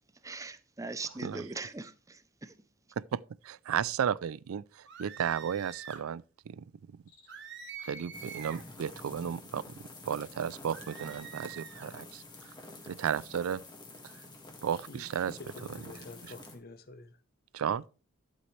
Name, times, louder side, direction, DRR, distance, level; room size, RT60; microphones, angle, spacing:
voice 1, 0.2-2.5, right 3 dB, 15° right, 0.6 m, -41 dB
voice 2, 3.0-6.6 6.9-7.0 7.8-12.5 12.8-13.6 14.6-15.3 17.5-17.8, right 8 dB, 75° right, 0.4 m, -34 dB
sound 1, 4.9-6.1 7.3-8.7 10.7-11.9, right 7 dB, 55° right, 1.5 m, -45 dB
Cricket, 6.9-7.7, left 4 dB, 70° left, 3.8 m, -66 dB
sound 2, 8.1-16.5, left 2 dB, 20° left, 1.8 m, -49 dB
voice 3, 14.7-17.2, left 2 dB, 45° left, 0.8 m, -49 dB
11.5 x 8.1 x 3.2 m
head